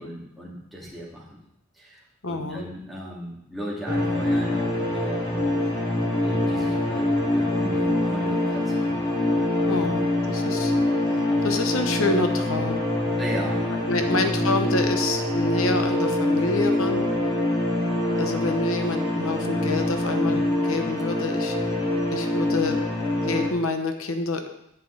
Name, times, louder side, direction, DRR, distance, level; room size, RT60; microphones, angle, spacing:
voice 1, 0.0-1.4 1.8-2.0 2.3-5.5 6.2-9.5 13.2-13.7 14.0-14.1, equal, ahead, -6 dB, 2.3 m, -37 dB
voice 2, 2.2-2.6 9.7-10.7 11.4-12.8 13.9-17.0 18.1-21.6 22.1-22.8 23.2-24.5, left 2 dB, 90° left, 6 dB, 1.0 m, -27 dB
sound 1, 3.9-23.5, left 1 dB, 25° left, 2.3 m, -24 dB
10.5 x 9.3 x 3.9 m, 0.81 s
head